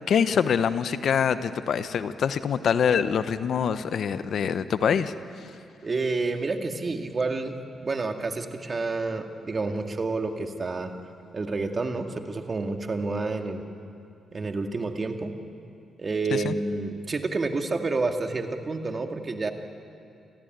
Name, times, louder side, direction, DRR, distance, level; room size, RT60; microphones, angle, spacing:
voice 1, 0.1-5.5 16.3-16.5, left 7 dB, 70° left, 13 dB, 0.9 m, -25 dB
voice 2, 5.8-7.5 7.8-10.9 11.3-13.6 14.3-15.3 16.0-19.5, right 3 dB, 40° right, 5 dB, 2.3 m, -29 dB
28.0 x 16.5 x 9.4 m, 2.5 s
supercardioid pair, 55°, 0 cm